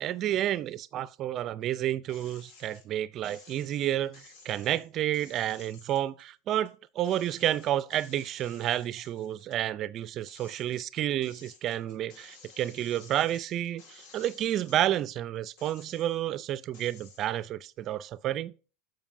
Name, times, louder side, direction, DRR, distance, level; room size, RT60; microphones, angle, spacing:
voice 1, 0.0-18.5, right 12 dB, 40° right, 0.4 m, -30 dB
sound 1, 2.1-2.9 3.2-6.7 7.0-9.6 10.0-15.0 15.5-16.3 16.7-17.3, left 5 dB, 65° left, 1.8 m, -55 dB
15.0 x 5.2 x 2.6 m
supercardioid pair, 120°, 0 cm